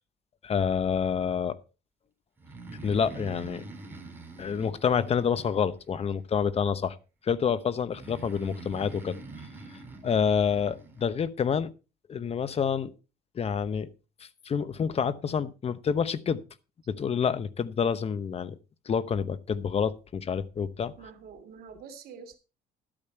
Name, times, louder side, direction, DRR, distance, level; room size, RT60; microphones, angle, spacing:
voice 1, 0.4-1.6 2.8-3.6 4.4-7.0 7.2-9.2 10.0-11.7 12.1-12.9 13.3-13.9 14.2-16.4 16.9-18.6 18.9-20.9, left 7 dB, 35° left, 15 dB, 0.9 m, -28 dB
Breathing, 2.4-6.1 7.9-11.0, right 3 dB, 10° right, 3.6 m, -44 dB
voice 2, 21.0-22.3, right 6 dB, 65° right, 5 dB, 2.9 m, -46 dB
12.5 x 8.9 x 4.4 m, 0.32 s
cardioid pair, 110°, 17 cm